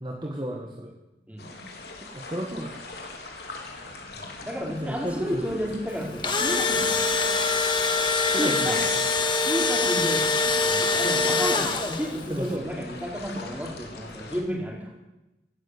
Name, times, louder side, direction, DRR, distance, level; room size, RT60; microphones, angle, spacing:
voice 1, 0.0-0.9 2.1-2.8 4.8-5.4 8.2-9.0 12.3-12.7, right 1 dB, 25° right, 0 dB, 1.9 m, -33 dB
voice 2, 1.3-1.6 4.1-7.3 8.4-8.8 9.4-14.9, equal, 10° right, -1 dB, 4.8 m, -32 dB
sound 1, 1.4-14.4, left 3 dB, 65° left, 3.7 m, -41 dB
Engine / Drill, 6.0-12.2, left 3 dB, 25° left, 1.9 m, -24 dB
18.0 x 17.5 x 8.4 m, 0.99 s
head